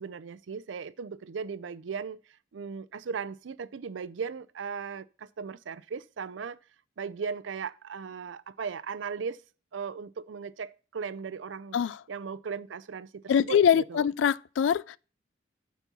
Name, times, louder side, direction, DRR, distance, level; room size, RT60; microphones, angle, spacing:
voice 1, 0.0-2.2 2.5-6.6 7.0-9.4 9.7-11.8 12.1-14.0, right 5 dB, 90° right, 0.5 m, -37 dB
voice 2, 11.7-12.0 13.3-15.0, left 8 dB, 85° left, 0.3 m, -24 dB
9.0 x 4.2 x 6.1 m
head